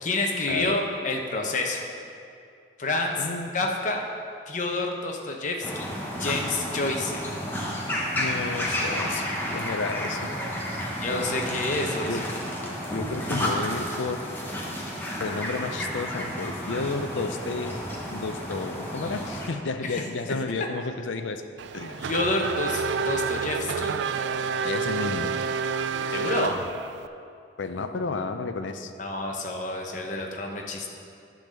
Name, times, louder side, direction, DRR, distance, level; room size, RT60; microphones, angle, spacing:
voice 1, 0.0-1.9 2.8-3.3 3.5-4.0 4.5-7.2 10.8-12.2 19.8-20.4 22.0-23.9 26.1-26.6 29.0-30.9, left 2 dB, 40° left, 1 dB, 0.9 m, -29 dB
voice 2, 3.2-3.5 8.1-10.3 12.1-12.2 12.9-14.2 15.2-17.8 18.1-21.4 21.7-22.0 24.6-25.3 27.6-28.9, left 3 dB, 85° left, 8 dB, 0.5 m, -32 dB
sound 1, 5.6-19.5, equal, 10° left, 1.0 m, -31 dB
Race car auto racing / Accelerating revving vroom, 21.6-27.1, right 5 dB, 70° right, 0.3 m, -29 dB
10.5 x 3.9 x 6.6 m, 2.4 s
head